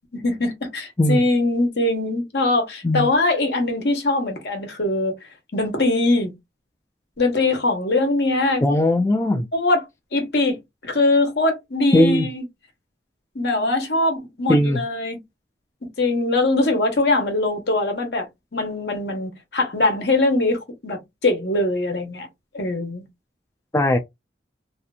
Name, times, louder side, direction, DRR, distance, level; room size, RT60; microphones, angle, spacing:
voice 1, 0.1-5.1 5.5-6.3 7.2-8.6 9.5-9.8 10.1-12.5 13.3-15.2 16.0-18.3 18.5-22.3 22.5-23.0, left 2 dB, 65° left, 1.1 m, -22 dB
voice 2, 8.6-9.5 11.9-12.3 14.5-14.8 23.7-24.0, left 1 dB, 15° left, 0.3 m, -18 dB
2.8 x 2.5 x 2.3 m
head